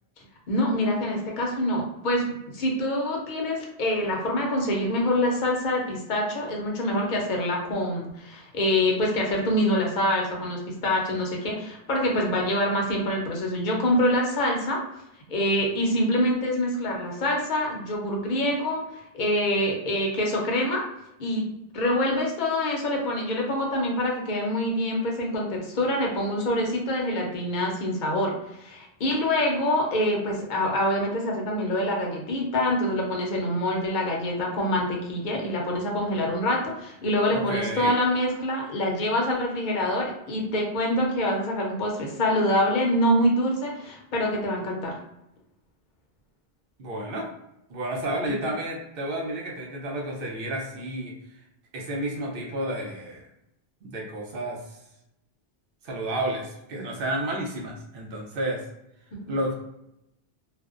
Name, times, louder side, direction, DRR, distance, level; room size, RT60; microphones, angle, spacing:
voice 1, 0.5-14.8 15.3-20.9 21.2-45.0 59.1-59.2, left 1 dB, 55° left, 0 dB, 0.7 m, -25 dB
voice 2, 37.3-37.9 46.8-47.3 47.7-51.1 51.7-53.2 53.8-54.6 55.8-58.6 59.3-59.5, right 1 dB, 65° right, -1 dB, 0.8 m, -31 dB
2.4 x 2.1 x 2.4 m, 0.82 s
omnidirectional pair, 1.0 m